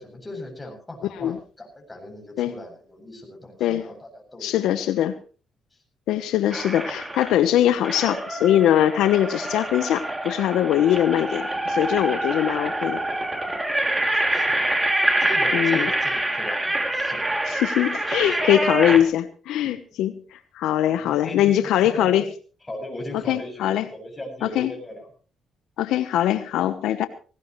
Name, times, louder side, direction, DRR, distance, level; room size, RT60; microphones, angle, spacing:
voice 1, 0.0-4.7 14.3-14.6 15.2-17.3 18.2-18.6 18.9-19.0 19.6-19.8 21.0-22.3 22.7-25.1, left 1 dB, 15° left, 2 dB, 7.9 m, -38 dB
voice 2, 4.4-5.2 6.1-13.0 15.5-15.9 17.5-22.2 23.3-23.9 24.4-24.7 25.8-27.1, left 11 dB, 85° left, 11 dB, 1.0 m, -22 dB
sound 1, 6.5-7.4 7.8-19.0, right 1 dB, 15° right, 2.9 m, -26 dB
19.0 x 18.5 x 3.2 m, 0.37 s
cardioid pair, 90°, 0 cm